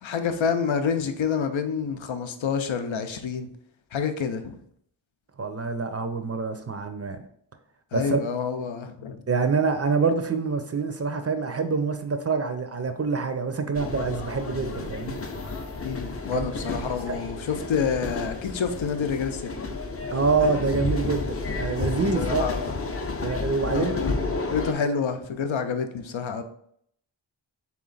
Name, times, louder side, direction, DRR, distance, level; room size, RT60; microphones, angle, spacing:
voice 1, 0.0-3.5 3.9-4.6 7.9-9.2 15.8-19.5 22.1-22.8 23.7-24.1 24.5-26.4, left 6 dB, 80° left, 8 dB, 0.6 m, -28 dB
voice 2, 5.4-7.2 7.9-8.2 9.3-15.2 16.3-16.5 17.1-17.2 20.1-22.5 23.2-24.0 24.8-24.9, right 4 dB, 35° right, 8 dB, 0.4 m, -26 dB
sound 1, 13.7-24.7, left 3 dB, 30° left, 0.5 m, -31 dB
3.4 x 3.0 x 3.8 m, 0.68 s
wide cardioid pair, 45°, 46 cm